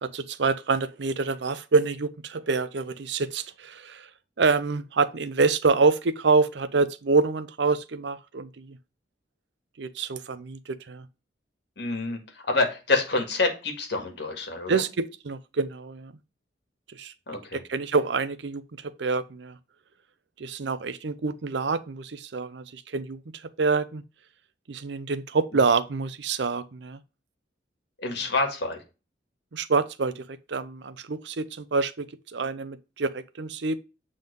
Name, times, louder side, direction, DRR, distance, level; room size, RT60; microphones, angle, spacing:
voice 1, 0.0-4.1 4.4-8.8 9.8-11.0 14.7-16.1 16.9-17.1 17.5-19.6 20.4-23.2 23.6-24.0 24.7-27.0 29.5-33.8, right 4 dB, 70° right, 0.6 m, -26 dB
voice 2, 11.8-12.2 12.5-14.8 17.3-17.6 28.0-28.8, left 3 dB, 65° left, 2.0 m, -27 dB
7.6 x 3.8 x 5.2 m
head